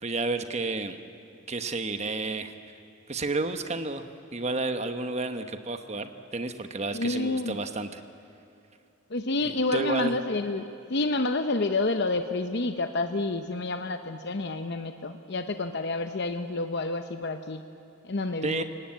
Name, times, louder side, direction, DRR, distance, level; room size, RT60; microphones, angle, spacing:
voice 1, 0.0-1.0 1.5-2.5 3.1-4.1 4.3-8.0 9.4-10.1 18.4-18.6, right 3 dB, 30° right, 8 dB, 1.1 m, -31 dB
voice 2, 6.9-7.6 9.1-10.6 10.9-17.6 18.0-18.6, left 2 dB, 55° left, 7 dB, 0.8 m, -29 dB
29.0 x 18.0 x 8.8 m, 2.6 s
head